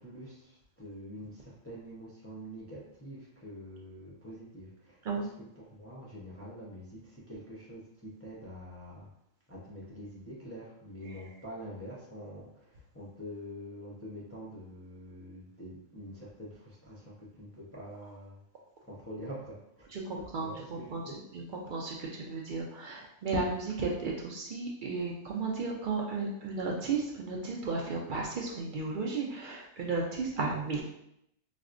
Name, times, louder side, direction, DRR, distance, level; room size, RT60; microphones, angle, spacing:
voice 1, 0.0-9.1 9.5-18.4 18.9-19.9 20.4-21.1, equal, 20° left, -6 dB, 0.4 m, -46 dB
voice 2, 19.9-21.0 21.3-30.8, right 3 dB, 70° right, -2 dB, 0.4 m, -34 dB
4.1 x 2.1 x 2.5 m, 0.78 s
omnidirectional pair, 1.3 m